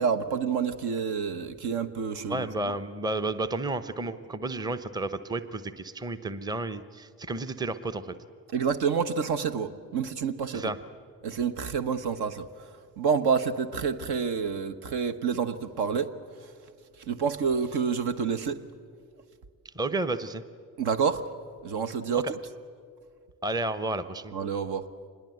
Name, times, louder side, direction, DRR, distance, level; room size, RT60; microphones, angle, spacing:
voice 1, 0.0-2.7 8.5-10.7 11.2-12.7 13.0-16.1 16.4-16.5 17.1-18.6 20.8-21.2 21.6-22.4 24.3-24.9, right 6 dB, 55° right, 1.2 m, -28 dB
voice 2, 2.3-8.2 10.5-10.8 19.6-20.4 23.4-24.3, right 2 dB, 10° right, 0.9 m, -32 dB
25.5 x 21.0 x 7.9 m
figure-of-eight pair, 50°, 48 cm